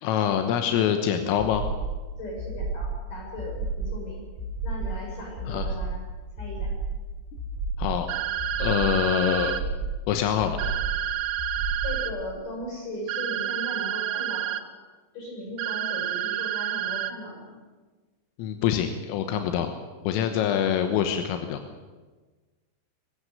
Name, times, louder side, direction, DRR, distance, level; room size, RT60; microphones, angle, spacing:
voice 1, 0.0-1.6 5.5-5.7 7.8-8.1 8.6-9.5 10.1-10.6 18.4-19.7 20.1-21.6, left 9 dB, 85° left, 7 dB, 3.7 m, -25 dB
sound 1, 1.4-2.0 2.4-3.0 3.4-4.0 4.4-5.0 5.4-6.0 6.4-7.0 7.4-8.0 8.4-9.0 9.4-10.0 10.4-11.0 11.4-12.0, right 3 dB, 50° right, 5.0 m, -31 dB
voice 2, 2.2-4.2 4.6-6.0 6.4-6.7 11.8-14.7 15.1-17.6, left 1 dB, 40° left, 0 dB, 9.4 m, -37 dB
sound 2, 8.1-9.6 10.6-12.1 13.1-14.6 15.6-17.1, right 12 dB, 80° right, 2.5 m, -29 dB
23.5 x 15.0 x 8.1 m, 1.3 s
omnidirectional pair, 5.9 m